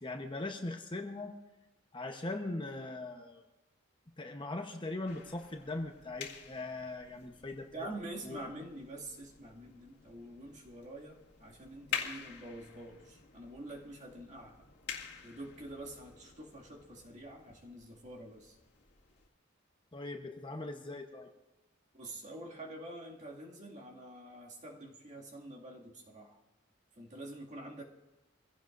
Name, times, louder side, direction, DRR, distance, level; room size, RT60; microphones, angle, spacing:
voice 1, 0.0-1.3 1.9-3.4 4.2-7.9 8.2-8.4 19.9-21.3, left 2 dB, 25° left, 4 dB, 1.0 m, -40 dB
sound 1, 5.1-19.3, left 7 dB, 60° left, 2.1 m, -48 dB
voice 2, 7.7-14.7 15.2-18.6 21.9-26.4 26.9-27.8, right 1 dB, 40° right, -1 dB, 2.3 m, -47 dB
25.5 x 16.0 x 2.6 m, 1.0 s
head